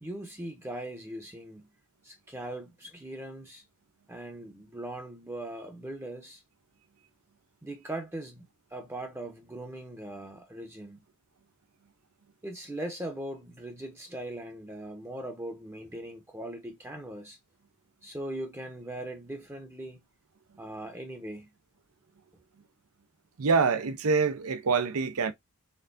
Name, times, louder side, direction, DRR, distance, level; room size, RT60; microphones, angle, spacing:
voice 1, 0.0-1.7 2.0-3.6 4.1-6.4 7.6-8.4 8.7-11.0 12.4-17.4 18.0-20.0 20.6-21.5, right 1 dB, 10° right, 0.7 m, -40 dB
voice 2, 23.4-25.3, right 5 dB, 80° right, 0.6 m, -25 dB
4.4 x 3.7 x 2.5 m
head